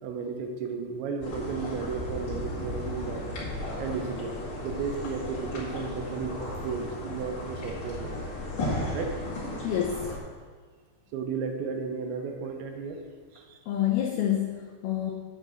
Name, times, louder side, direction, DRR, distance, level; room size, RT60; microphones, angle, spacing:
voice 1, 0.0-3.5 3.8-6.4 6.6-8.2 8.9-9.2 11.1-13.0 13.3-13.6, right 5 dB, 80° right, 4 dB, 3.2 m, -34 dB
sound 1, 1.2-10.2, left 1 dB, 40° left, 2.2 m, -35 dB
voice 2, 9.6-10.1 13.7-15.1, left 11 dB, 90° left, 2 dB, 2.1 m, -27 dB
8.6 x 5.3 x 7.7 m, 1.5 s
omnidirectional pair, 5.3 m